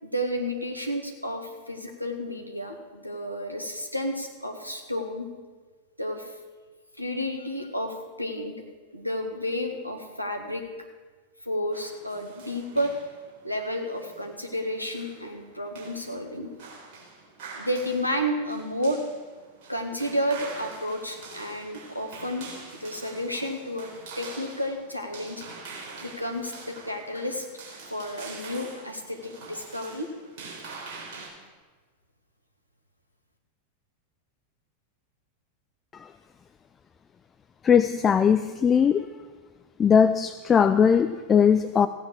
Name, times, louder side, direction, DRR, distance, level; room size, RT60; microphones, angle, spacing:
voice 1, 0.0-5.3 6.0-6.3 7.0-8.5 8.9-10.6 11.4-12.9 13.4-16.5 17.5-19.0 19.7-22.5 22.8-23.9 24.2-25.4 26.0-27.5 27.9-30.1, equal, 90° left, 3 dB, 1.7 m, -31 dB
sound 1, 11.7-31.3, right 4 dB, 50° right, 3.7 m, -45 dB
voice 2, 37.6-39.1 39.8-41.9, left 7 dB, 20° left, 12 dB, 0.4 m, -19 dB
15.5 x 9.2 x 6.3 m, 1.4 s
figure-of-eight pair, 90°, 0 cm